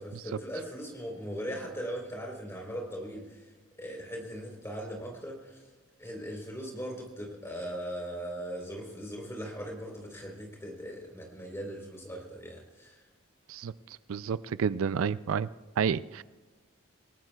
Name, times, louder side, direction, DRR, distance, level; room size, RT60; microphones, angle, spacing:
voice 1, 0.0-3.5 3.8-5.6 6.0-13.0, equal, 10° left, 3.8 m, -39 dB
voice 2, 14.1-15.5 15.8-16.2, right 7 dB, 80° right, 0.4 m, -29 dB
28.5 x 18.0 x 2.4 m
head